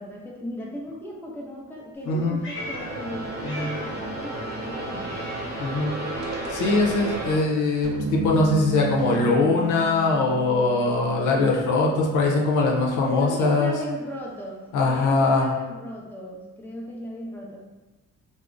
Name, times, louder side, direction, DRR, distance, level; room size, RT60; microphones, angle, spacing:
voice 1, 0.0-5.1 13.0-17.6, equal, 5° left, -3 dB, 0.6 m, -36 dB
Meow, 2.0-4.1 4.4-6.1 6.4-10.6, left 1 dB, 40° left, 1.2 m, -43 dB
voice 2, 2.1-2.4 3.4-3.7 5.6-5.9 6.5-13.7 14.7-15.5, left 3 dB, 85° left, -1 dB, 0.6 m, -22 dB
sound 1, 2.5-7.4, right 1 dB, 35° right, 0.8 m, -32 dB
sound 2, 7.8-12.2, right 3 dB, 60° right, 0.4 m, -32 dB
3.5 x 2.0 x 2.5 m, 1.1 s
cardioid pair, 90°, 30 cm